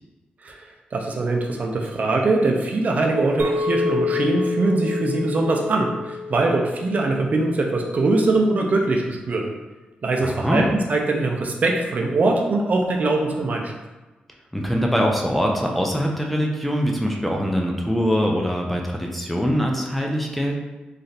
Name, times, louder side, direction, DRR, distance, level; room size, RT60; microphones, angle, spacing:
voice 1, 0.9-9.5 10.0-13.7, right 2 dB, 50° right, 1 dB, 0.6 m, -22 dB
Chink clink, 3.4-7.9, left 4 dB, 80° right, 0.8 m, -28 dB
voice 2, 10.2-10.7 14.5-20.6, equal, 5° left, 0 dB, 0.5 m, -23 dB
3.2 x 2.6 x 4.0 m, 1.1 s
cardioid pair, 85°, 3 cm